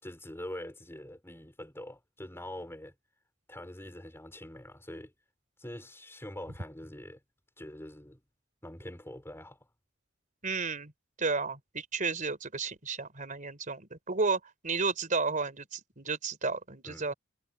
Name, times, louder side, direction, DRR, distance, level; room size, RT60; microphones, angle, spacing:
voice 1, 0.0-2.9 3.5-5.1 5.6-7.2 7.6-8.2 8.6-9.7 16.8-17.1, left 1 dB, 10° left, 4.4 m, -44 dB
voice 2, 10.4-10.9 11.2-17.1, right 4 dB, 40° right, 4.1 m, -32 dB
head